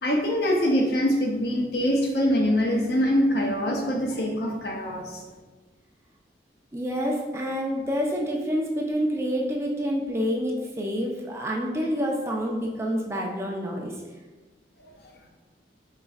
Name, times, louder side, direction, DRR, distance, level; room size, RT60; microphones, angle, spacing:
voice 1, 0.0-5.2, equal, 60° left, 1 dB, 0.6 m, -24 dB
voice 2, 6.7-13.9, equal, 15° right, -1 dB, 0.4 m, -28 dB
4.1 x 4.0 x 2.4 m, 1.3 s
head